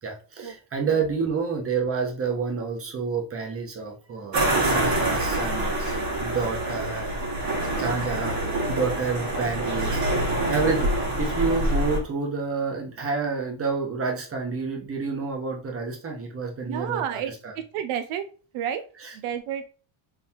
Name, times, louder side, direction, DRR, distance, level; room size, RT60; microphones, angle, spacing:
voice 1, 0.0-7.1 7.8-10.9 11.2-17.5 19.0-19.2, right 4 dB, 25° right, 1 dB, 1.0 m, -29 dB
sound 1, 4.3-12.0, right 1 dB, 55° right, 1.9 m, -26 dB
voice 2, 16.6-17.3 17.7-18.2 18.5-18.8 19.1-19.6, right 9 dB, 80° right, 8 dB, 0.6 m, -30 dB
3.8 x 3.4 x 2.8 m, 0.38 s
cardioid pair, 130°, 49 cm